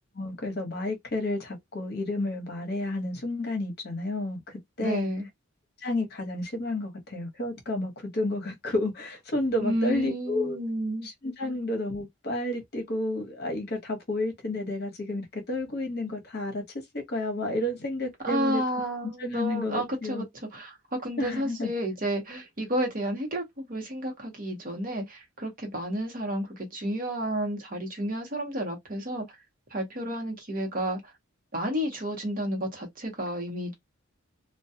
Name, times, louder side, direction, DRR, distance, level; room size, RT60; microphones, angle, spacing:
voice 1, 0.1-5.1 5.8-10.6 11.0-16.6 16.9-18.6 19.2-20.2 21.2-21.7, left 1 dB, 45° left, 0.9 m, -31 dB
voice 2, 4.8-5.3 9.6-11.1 18.2-20.3 20.5-29.2 29.7-31.1 31.5-33.7, equal, 40° right, 0.9 m, -31 dB
2.2 x 2.2 x 2.7 m
head